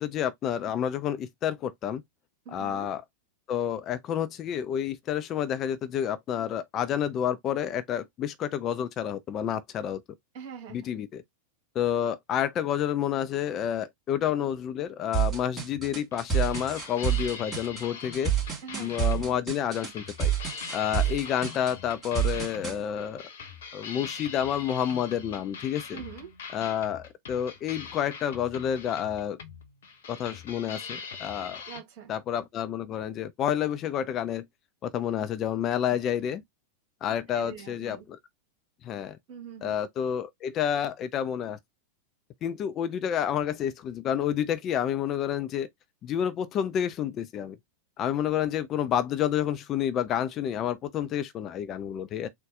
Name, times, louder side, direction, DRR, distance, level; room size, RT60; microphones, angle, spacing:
voice 1, 0.0-2.0 2.5-3.0 3.5-10.0 10.7-11.2 11.7-18.3 18.8-20.3 20.7-23.3 23.7-26.0 26.5-29.4 30.1-31.6 32.1-34.5 34.8-36.4 37.0-38.2 38.8-39.2 39.6-41.6 42.4-45.7 46.0-47.6 48.0-52.3, left 9 dB, 30° left, 0.4 m, -29 dB
voice 2, 2.5-2.9 10.3-10.9 18.6-19.0 25.9-26.3 31.6-32.1 37.3-38.0 39.3-39.8, right 7 dB, 45° right, 1.9 m, -43 dB
sound 1, 15.1-22.8, right 9 dB, 10° right, 2.3 m, -28 dB
sound 2, 15.7-31.8, left 6 dB, 60° left, 0.9 m, -43 dB
4.0 x 2.2 x 3.6 m
figure-of-eight pair, 90°, 0 cm